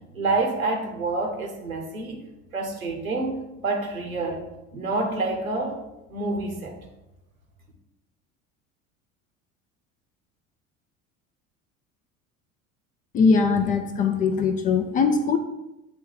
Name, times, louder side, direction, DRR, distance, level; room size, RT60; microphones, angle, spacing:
voice 1, 0.1-2.2 2.5-4.4 4.7-5.8 6.1-6.7, right 3 dB, 85° right, 1 dB, 1.1 m, -27 dB
voice 2, 13.1-15.4, left 5 dB, 20° left, 6 dB, 0.4 m, -21 dB
8.4 x 3.1 x 3.9 m, 0.94 s
figure-of-eight pair, 65°, 40 cm